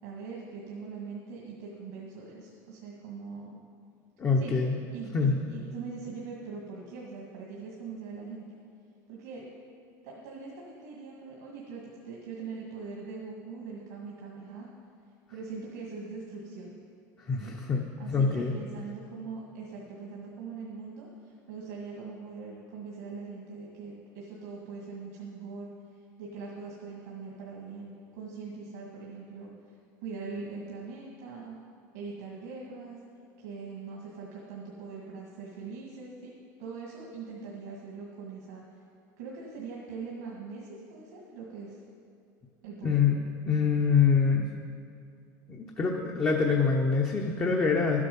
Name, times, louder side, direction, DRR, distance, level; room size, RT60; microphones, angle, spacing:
voice 1, 0.0-3.6 4.3-4.5 4.9-8.5 9.1-9.4 10.0-14.7 15.3-16.8 17.4-17.6 18.0-25.7 26.2-29.5 30.0-31.6 31.9-33.0 33.4-36.3 36.6-38.6 39.2-41.8 42.6-43.0, right 4 dB, 85° right, -3 dB, 1.9 m, -42 dB
voice 2, 4.2-4.7 5.1-5.4 17.3-18.5 42.8-43.2 43.5-44.5 45.5-48.0, left 5 dB, 25° left, 0 dB, 0.9 m, -25 dB
11.5 x 8.5 x 5.4 m, 2.5 s
supercardioid pair, 130°, 9 cm